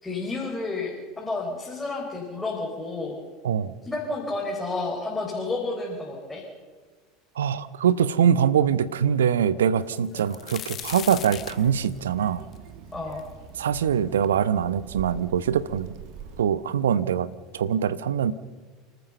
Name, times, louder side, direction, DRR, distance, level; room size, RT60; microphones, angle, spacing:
voice 1, 0.0-3.2 3.8-6.4 10.1-10.3 12.9-13.2, left 3 dB, 10° left, -3 dB, 4.6 m, -31 dB
voice 2, 7.4-12.4 13.6-15.9 16.4-17.3 17.5-18.3, right 8 dB, 75° right, 16 dB, 0.8 m, -23 dB
sound 1, 9.9-13.7 14.2-14.3 15.1-15.2 15.5-16.1 17.0-17.1 17.5-17.7, left 10 dB, 40° left, 0.9 m, -39 dB
Child speech kid speaking, 10.8-16.4, right 7 dB, 55° right, 1.7 m, -43 dB
29.0 x 13.0 x 6.9 m, 1.4 s
figure-of-eight pair, 75°, 0 cm